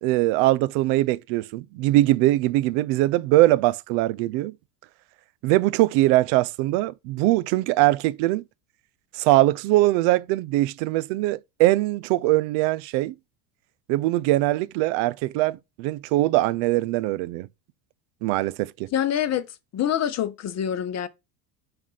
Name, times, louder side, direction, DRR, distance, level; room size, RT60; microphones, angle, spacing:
voice 1, 0.0-4.5 5.4-8.4 9.1-13.1 13.9-17.5 18.2-18.9, right 17 dB, 65° right, 0.5 m, -22 dB
voice 2, 18.9-19.5 19.7-21.1, left 10 dB, 35° left, 0.8 m, -25 dB
7.3 x 2.6 x 5.5 m
supercardioid pair, 120°, 48 cm